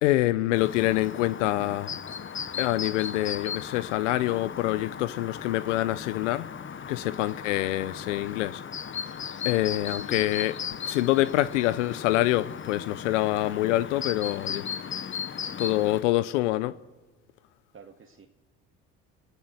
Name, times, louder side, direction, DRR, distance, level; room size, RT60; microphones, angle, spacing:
voice 1, 0.0-2.0 2.6-8.6 8.9-10.6 10.8-14.7 15.6-16.7, left 16 dB, 85° left, 0.6 m, -26 dB
Chirp tweet, 0.5-16.0, left 7 dB, 35° left, 1.1 m, -37 dB
voice 2, 9.8-10.4 17.7-18.3, right 5 dB, 35° right, 1.9 m, -51 dB
27.5 x 16.0 x 8.0 m
hypercardioid pair, 65°, 36 cm